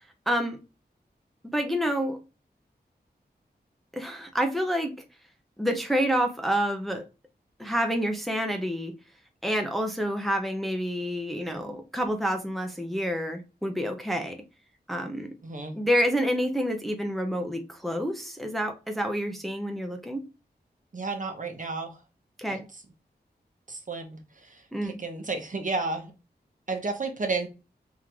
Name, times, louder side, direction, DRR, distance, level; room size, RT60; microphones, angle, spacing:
voice 1, 0.3-0.6 1.5-2.2 3.9-4.9 5.6-7.0 7.6-8.9 9.4-14.4 14.9-15.3 15.7-20.2 22.4-22.6 24.7-25.0, equal, ahead, 4 dB, 0.8 m, -28 dB
voice 2, 15.4-15.8 20.9-22.0 22.5-22.8 23.7-26.1 26.7-27.5, right 3 dB, 50° right, 3 dB, 1.2 m, -32 dB
3.7 x 3.1 x 3.5 m, 0.29 s
wide cardioid pair, 70°, 17 cm